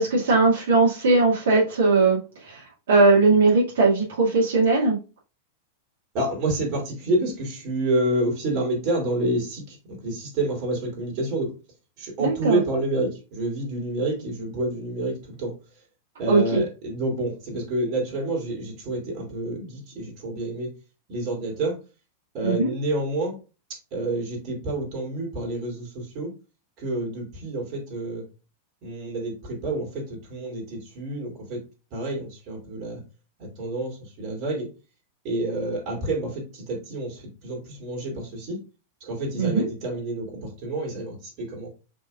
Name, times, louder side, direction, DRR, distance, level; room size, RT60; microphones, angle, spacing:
voice 1, 0.0-5.0 12.2-12.6 16.3-16.6 22.4-22.7 39.4-39.7, right 3 dB, 75° right, -6 dB, 2.0 m, -19 dB
voice 2, 6.1-11.5 12.0-15.5 16.2-20.7 21.1-21.8 22.3-23.4 23.9-26.3 26.8-28.2 28.8-31.6 31.9-33.0 33.4-34.7 35.2-38.6 39.0-41.7, right 1 dB, 50° right, -1 dB, 2.7 m, -28 dB
5.2 x 3.6 x 2.4 m, 0.31 s
hypercardioid pair, 105°, 0 cm